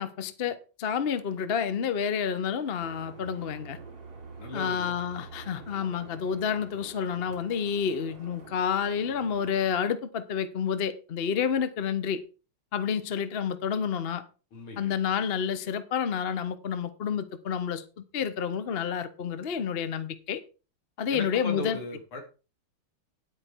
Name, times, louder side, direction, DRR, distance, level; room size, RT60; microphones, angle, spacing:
voice 1, 0.0-3.8 4.5-12.2 12.7-14.2 14.8-20.4 21.0-21.8, left 7 dB, 45° left, 0.8 m, -29 dB
sound 1, 2.8-9.7, right 4 dB, 55° right, 4.0 m, -47 dB
voice 2, 4.4-5.0 14.5-14.9 21.1-22.2, left 2 dB, 80° left, 3.4 m, -37 dB
10.0 x 8.6 x 4.5 m
omnidirectional pair, 2.4 m